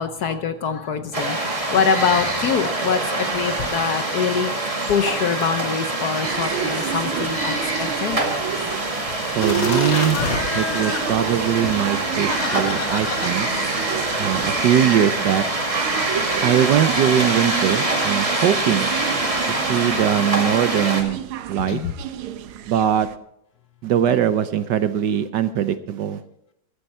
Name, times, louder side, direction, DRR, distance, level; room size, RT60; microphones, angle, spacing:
voice 1, 0.0-4.5 4.9-8.2 21.7-21.9, left 6 dB, 60° left, 9 dB, 1.2 m, -24 dB
sound 1, 1.1-21.0, right 2 dB, 15° right, 1.8 m, -25 dB
sound 2, 6.2-23.2, right 10 dB, 85° right, 1.7 m, -31 dB
voice 2, 9.3-10.2 10.5-13.5 14.2-15.5 16.4-18.9 19.5-21.2 21.5-21.8 22.7-23.1 23.8-26.2, right 9 dB, 65° right, 12 dB, 1.2 m, -21 dB
sound 3, 9.4-14.6, left 4 dB, 75° left, 2.8 m, -29 dB
14.5 x 13.5 x 4.4 m, 0.77 s
omnidirectional pair, 2.2 m